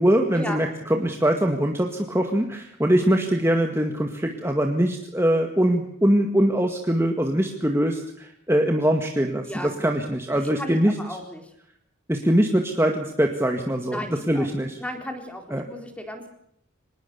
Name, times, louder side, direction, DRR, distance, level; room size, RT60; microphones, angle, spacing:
voice 1, 0.0-10.9 12.1-14.0 14.3-14.8 15.5-15.6, right 1 dB, 10° right, 3 dB, 2.0 m, -22 dB
voice 2, 9.4-9.9 10.3-11.5 13.9-14.5 14.8-16.3, equal, 5° left, 4 dB, 4.0 m, -35 dB
25.5 x 20.5 x 7.0 m, 0.72 s
head